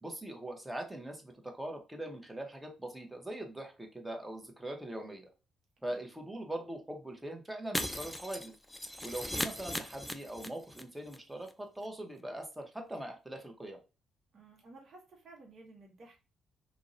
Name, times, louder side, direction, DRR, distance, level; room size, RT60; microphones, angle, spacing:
voice 1, 0.0-5.3 5.8-8.5 9.0-13.8, right 1 dB, 10° right, 2 dB, 0.7 m, -42 dB
Shatter, 7.7-10.8 11.1-11.2 11.5-11.6, left 1 dB, 10° left, 0.3 m, -38 dB
voice 2, 14.3-16.2, right 2 dB, 50° right, 0 dB, 0.7 m, -55 dB
2.5 x 2.0 x 2.5 m, 0.32 s
cardioid pair, 90°, 0 cm